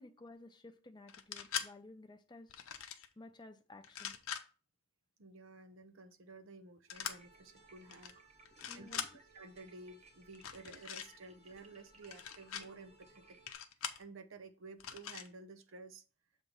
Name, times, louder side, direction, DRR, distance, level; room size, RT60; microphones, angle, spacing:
voice 1, 0.0-2.6 3.2-4.1 8.5-9.2, left 2 dB, 20° left, 0.6 m, -55 dB
sound 1, 1.1-1.7 2.5-3.1 3.8-4.4 6.9-7.2 7.9-8.1 8.5-9.1 10.3-11.1 12.0-12.6 13.5-14.0 14.8-15.3, left 9 dB, 90° left, 0.7 m, -42 dB
voice 2, 5.2-8.2 8.7-9.1 9.3-13.4 14.0-16.0, right 3 dB, 70° right, 0.7 m, -53 dB
sound 2, 6.9-13.5, right 2 dB, 30° right, 1.1 m, -62 dB
7.2 x 2.9 x 5.3 m
head